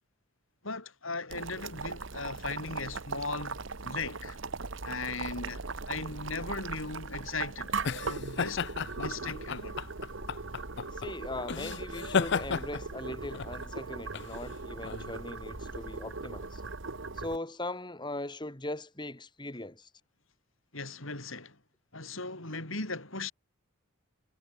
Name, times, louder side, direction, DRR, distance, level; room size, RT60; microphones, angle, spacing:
voice 1, 0.6-4.4 4.8-8.6 9.0-9.8 20.7-21.6 21.9-23.3, left 3 dB, 75° left, 7.6 m, -38 dB
Boiling, 1.3-17.4, right 4 dB, 65° right, 1.2 m, -39 dB
sound 1, 6.8-16.0, left 6 dB, 55° left, 0.5 m, -35 dB
voice 2, 10.9-16.6 17.1-19.9, left 2 dB, 20° left, 2.5 m, -40 dB
head